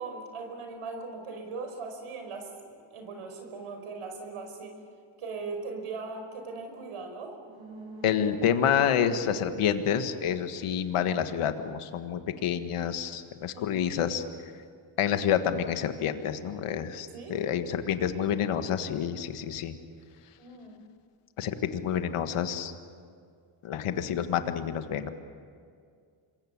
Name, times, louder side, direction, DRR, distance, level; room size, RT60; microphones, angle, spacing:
voice 1, 0.0-4.8 5.2-7.4 13.5-13.8 17.1-17.4 20.4-20.8, right 4 dB, 80° right, 5 dB, 5.5 m, -39 dB
sound 1, 7.4-11.1 11.4-11.5, right 2 dB, 65° right, 6.2 m, -46 dB
voice 2, 8.0-14.2 15.0-19.7 21.4-22.7 23.6-25.1, left 8 dB, 85° left, 8 dB, 1.7 m, -28 dB
27.0 x 22.5 x 8.6 m, 2.2 s
cardioid pair, 90°, 50 cm